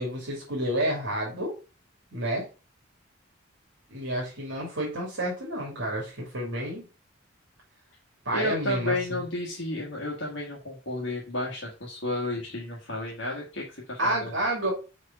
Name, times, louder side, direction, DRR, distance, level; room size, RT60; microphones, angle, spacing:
voice 1, 0.0-1.5 2.1-2.4 3.9-6.8 8.2-9.2 14.0-14.7, right 1 dB, 70° right, -4 dB, 2.7 m, -30 dB
voice 2, 8.3-14.3, left 1 dB, 70° left, -4 dB, 1.7 m, -32 dB
5.2 x 4.8 x 5.4 m, 0.33 s
head